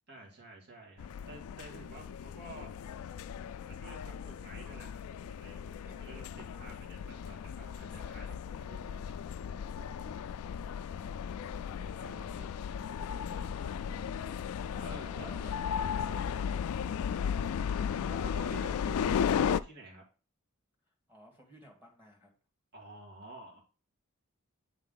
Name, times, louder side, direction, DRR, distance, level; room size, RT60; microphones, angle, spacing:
voice 1, 0.1-2.7 3.6-5.0 5.3-9.2 11.8-12.5 14.8-15.5 15.9-16.0 16.4-16.7 18.0-20.0 22.7-23.6, right 3 dB, 50° right, -1 dB, 2.1 m, -51 dB
sound 1, 1.0-19.6, left 7 dB, 80° left, 0.3 m, -35 dB
voice 2, 15.2-15.5 16.0-16.2 20.9-22.3, equal, 10° right, -1 dB, 1.7 m, -58 dB
8.9 x 3.6 x 3.8 m, 0.35 s
head